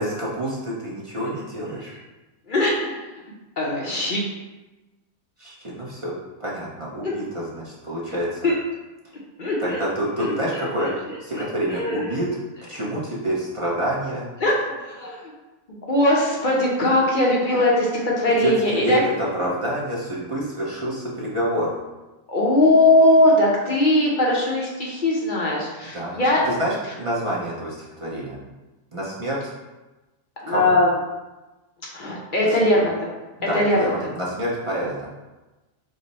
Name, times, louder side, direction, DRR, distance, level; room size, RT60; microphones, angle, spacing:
voice 1, 0.0-1.9 5.4-6.1 6.4-8.4 9.6-10.9 11.2-12.3 12.7-14.3 18.4-21.7 25.9-26.2 26.4-28.4 28.9-29.5 30.5-30.7 32.4-32.6 33.4-35.1, right 1 dB, 40° right, -6 dB, 0.4 m, -27 dB
voice 2, 2.5-3.1 3.6-4.2 7.0-7.1 8.4-8.5 9.4-9.8 10.2-10.9 11.3-12.2 14.4-15.3 15.7-19.0 22.3-26.4 30.4-30.9 31.9-33.1 33.5-33.9, left 1 dB, 50° left, -3 dB, 0.6 m, -20 dB
4.9 x 2.1 x 4.0 m, 1.1 s
omnidirectional pair, 1.6 m